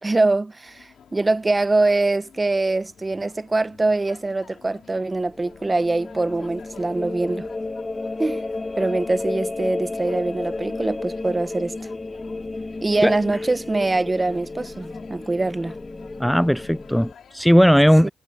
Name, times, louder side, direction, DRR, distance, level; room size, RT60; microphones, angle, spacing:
voice 1, 0.0-7.5 8.2-8.4 8.8-11.7 12.8-15.7 18.0-18.1, right 2 dB, 30° right, 1.2 m, -23 dB
sound 1, 0.6-17.5, left 7 dB, 70° left, 4.7 m, -50 dB
sound 2, 5.2-17.1, left 3 dB, 30° left, 4.3 m, -32 dB
voice 2, 16.2-18.1, equal, ahead, 0.3 m, -17 dB
supercardioid pair, 45°, 0 cm